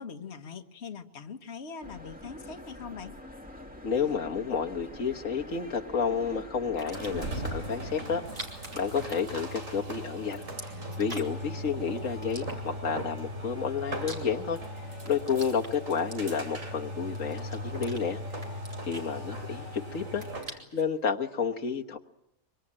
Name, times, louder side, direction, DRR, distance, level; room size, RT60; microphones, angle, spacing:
voice 1, 0.0-3.1, left 5 dB, 55° left, 6 dB, 1.6 m, -42 dB
sound 1, 1.8-7.9, left 1 dB, 5° right, 2.2 m, -45 dB
voice 2, 3.8-8.2 8.7-10.4 11.0-14.6 15.1-18.2 18.8-22.0, left 6 dB, 75° left, 3 dB, 1.7 m, -31 dB
sound 2, 6.7-7.3 8.2-9.8 10.1-11.5 12.2-13.0 13.6-14.7 15.0-16.6 17.1-18.0 18.4-19.7 20.0-20.9, right 1 dB, 45° right, 4.4 m, -45 dB
sound 3, 6.9-20.6, equal, 75° right, 3.7 m, -38 dB
24.5 x 24.5 x 8.8 m, 0.83 s
omnidirectional pair, 1.4 m